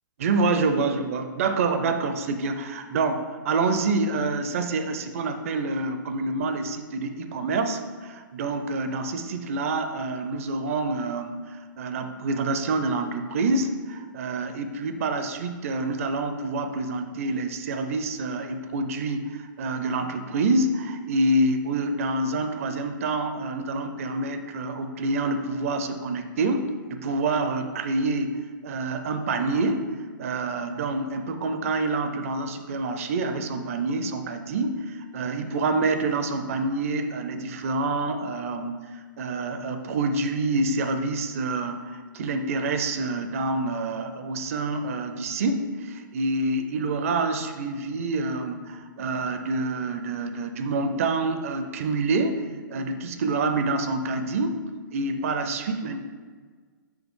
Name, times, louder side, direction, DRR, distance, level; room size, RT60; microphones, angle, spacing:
voice 1, 0.2-29.9 30.2-52.4 52.7-54.6 54.9-56.0, right 3 dB, 40° right, 7 dB, 0.4 m, -27 dB
6.1 x 4.9 x 3.6 m, 1.5 s
hypercardioid pair, 165°, 11 cm